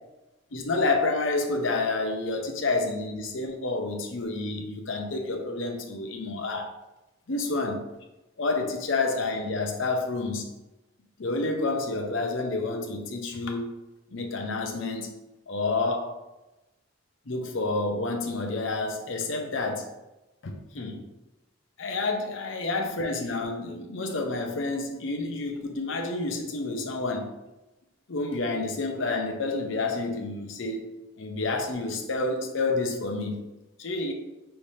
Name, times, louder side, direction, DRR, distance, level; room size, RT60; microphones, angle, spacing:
voice 1, 0.5-6.7 7.3-7.8 8.4-10.4 11.2-13.7 14.1-15.1 15.5-16.1 17.3-19.9 20.4-21.0 21.8-27.3 28.1-30.8 31.2-33.4 33.8-34.1, left 3 dB, 65° left, 3 dB, 0.8 m, -29 dB
5.7 x 3.3 x 2.7 m, 1.0 s
head